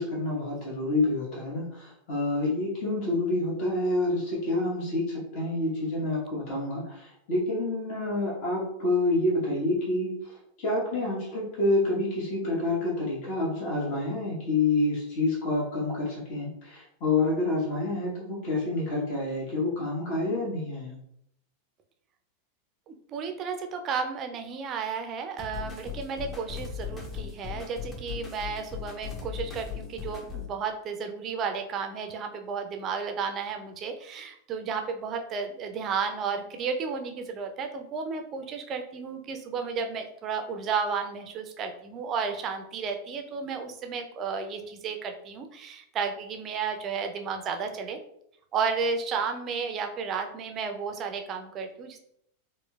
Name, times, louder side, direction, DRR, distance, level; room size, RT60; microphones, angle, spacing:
voice 1, 0.0-10.1 10.6-21.0, left 2 dB, 40° left, -4 dB, 1.0 m, -28 dB
voice 2, 22.9-48.0 48.5-52.0, right 5 dB, 30° right, 5 dB, 0.4 m, -33 dB
sound 1, 25.4-30.5, left 7 dB, 15° left, 0.7 m, -38 dB
4.3 x 2.1 x 2.2 m, 0.73 s
figure-of-eight pair, 90°, 0 cm